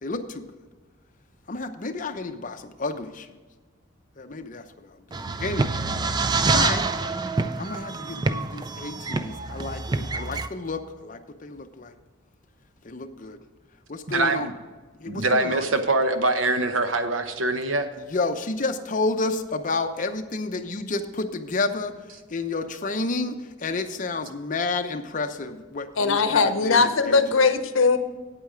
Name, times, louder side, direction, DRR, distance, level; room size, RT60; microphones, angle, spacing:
voice 1, 0.0-0.4 1.5-3.3 4.2-4.9 5.4-5.9 6.5-6.8 7.6-11.9 12.8-13.4 13.9-14.5 15.0-15.6 18.1-21.9 22.3-27.2, left 3 dB, 40° left, 7 dB, 0.7 m, -30 dB
sound 1, 5.1-10.5, right 3 dB, 20° right, 0.4 m, -26 dB
voice 2, 14.1-14.5 15.1-17.9, right 2 dB, 70° right, 8 dB, 0.9 m, -23 dB
voice 3, 26.0-28.0, left 4 dB, 75° left, 10 dB, 0.8 m, -20 dB
9.0 x 8.7 x 5.0 m, 1.3 s
head